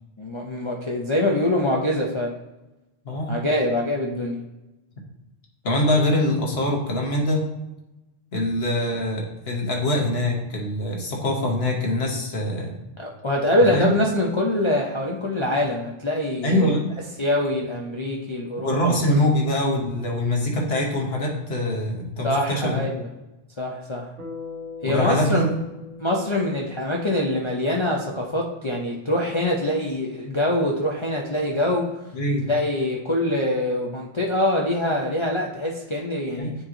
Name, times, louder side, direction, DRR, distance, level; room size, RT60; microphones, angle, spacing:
voice 1, 0.2-2.3 3.3-4.4 13.0-16.7 17.2-18.8 19.1-19.2 22.2-23.0 23.6-24.1 24.8-25.4 26.0-31.9 32.5-36.5, left 1 dB, 35° left, -2 dB, 0.5 m, -24 dB
voice 2, 3.0-3.4 5.6-7.4 8.3-12.7 13.7-13.9 16.4-17.0 18.6-22.8 24.8-25.5 32.1-32.5 36.4-36.5, left 1 dB, 60° left, 0 dB, 1.4 m, -23 dB
Bass guitar, 24.2-28.6, left 4 dB, 80° right, 1.4 m, -41 dB
8.8 x 3.0 x 3.8 m, 1.0 s
omnidirectional pair, 1.2 m